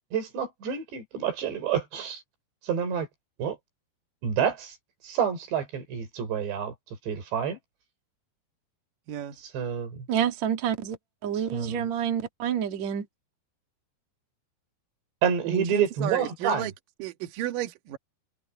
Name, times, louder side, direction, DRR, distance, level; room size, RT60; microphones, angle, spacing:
voice 1, 0.1-2.2 2.6-3.1 3.4-3.6 4.2-4.8 5.0-6.7 7.1-7.6 9.4-10.1 11.5-11.7 15.2-16.7, right 7 dB, 80° right, 6.4 m, -28 dB
voice 2, 10.1-11.0 11.2-13.1, right 9 dB, 45° right, 3.2 m, -28 dB
voice 3, 15.4-16.7 17.0-18.0, right 12 dB, 60° right, 2.7 m, -32 dB
omnidirectional pair, 4.9 m